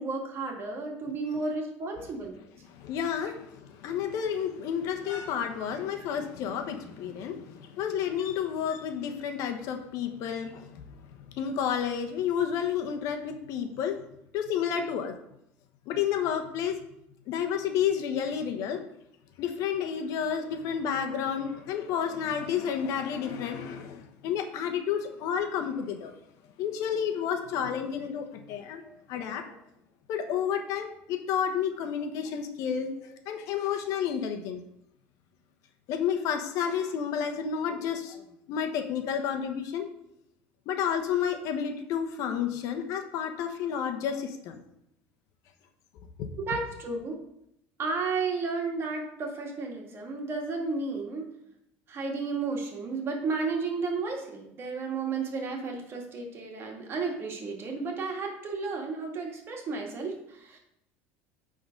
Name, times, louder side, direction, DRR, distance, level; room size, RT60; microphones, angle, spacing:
voice 1, 0.0-2.4 28.0-28.2 28.8-28.9 29.5-29.6 46.4-47.2 47.8-51.3 51.9-60.6, right 4 dB, 40° right, 1 dB, 1.9 m, -33 dB
voice 2, 2.7-10.8 11.3-14.0 14.3-15.1 15.9-16.8 17.3-18.8 19.4-26.1 26.6-28.8 29.1-29.4 30.1-32.9 33.3-34.6 35.9-38.2 38.5-39.9 40.7-44.6 46.2-46.3, left 8 dB, 65° left, 5 dB, 1.1 m, -30 dB
9.1 x 3.9 x 5.2 m, 0.79 s
supercardioid pair, 105°, 6 cm